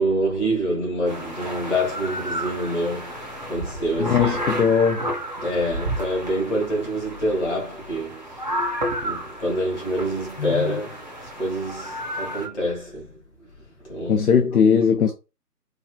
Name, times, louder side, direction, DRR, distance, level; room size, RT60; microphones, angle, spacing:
voice 1, 0.0-3.2 3.5-4.7 5.4-8.2 9.0-11.0 11.4-13.1 13.9-14.3, equal, 45° left, 1.9 m, -26 dB
sound 1, 1.0-12.5, right 1 dB, 30° right, 0.6 m, -31 dB
voice 2, 4.0-5.0 10.4-10.7 14.1-15.1, left 6 dB, 60° left, 0.5 m, -19 dB
4.1 x 2.4 x 2.3 m
figure-of-eight pair, 150°, 50 cm